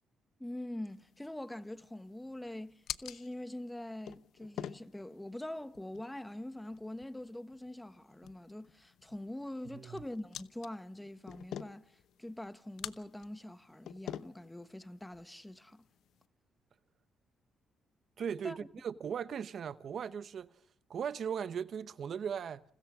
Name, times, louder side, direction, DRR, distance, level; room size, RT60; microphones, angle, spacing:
voice 1, 0.4-15.9 18.4-18.7, left 1 dB, 10° left, 1.3 m, -44 dB
sound 1, 0.9-16.2, left 10 dB, 80° left, 0.9 m, -49 dB
voice 2, 18.2-20.5 20.9-22.6, right 7 dB, 60° right, 0.8 m, -38 dB
30.0 x 28.0 x 3.7 m
cardioid pair, 80°, 0 cm